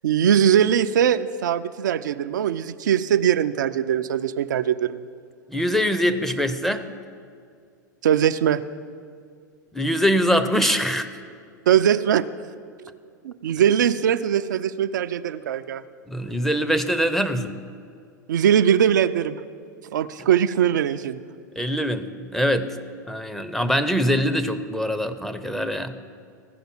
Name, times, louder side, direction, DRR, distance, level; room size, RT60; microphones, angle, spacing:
voice 1, 0.0-5.0 8.0-8.6 11.7-12.2 13.2-15.8 18.3-19.4 19.9-21.2, right 9 dB, 70° right, 10 dB, 0.4 m, -21 dB
voice 2, 5.5-6.8 9.7-11.1 16.1-17.6 21.6-22.8 23.1-26.0, equal, 5° left, 9 dB, 0.5 m, -23 dB
15.0 x 5.3 x 5.9 m, 2.2 s
figure-of-eight pair, 90°, 10 cm